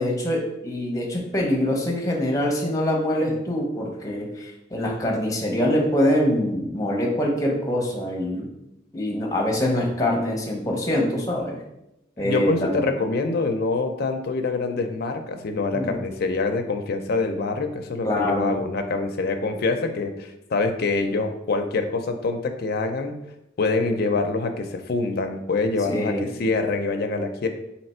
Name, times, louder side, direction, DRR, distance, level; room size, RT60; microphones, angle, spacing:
voice 1, 0.0-8.5 8.9-11.6 12.2-12.8 15.7-16.0 18.0-18.6 25.9-26.3, left 1 dB, 20° left, 0 dB, 0.7 m, -24 dB
voice 2, 12.2-23.1 23.6-27.5, left 3 dB, 55° left, 5 dB, 0.4 m, -25 dB
3.3 x 3.0 x 4.2 m, 0.88 s
head